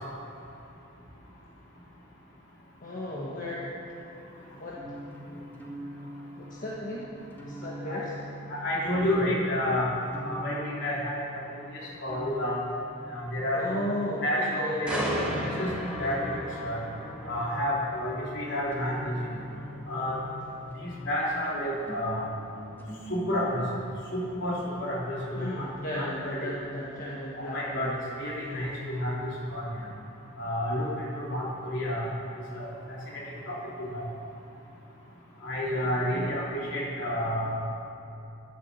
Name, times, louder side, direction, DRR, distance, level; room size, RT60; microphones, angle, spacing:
voice 1, 2.8-3.8 4.6-4.8 6.4-7.1 7.4-8.1 13.5-15.5 25.3-27.9 36.0-36.4, left 1 dB, 45° left, -6 dB, 1.6 m, -35 dB
sound 1, 4.7-21.0 21.8-23.8, equal, 10° left, 1.8 m, -44 dB
voice 2, 8.5-9.9 10.2-11.2 11.7-12.6 13.1-13.6 14.2-15.0 15.6-16.4 16.6-16.8 17.3-19.1 19.9-20.2 21.1-22.3 23.1-23.6 24.1-25.7 25.9-26.4 27.4-29.7 30.4-32.1 32.5-33.6 33.9-34.0 35.4-37.6, left 1 dB, 65° left, -5 dB, 3.5 m, -30 dB
sound 2, 14.9-28.7 29.1-29.4, equal, 5° right, 2.2 m, -39 dB
11.0 x 11.0 x 7.5 m, 2.8 s
head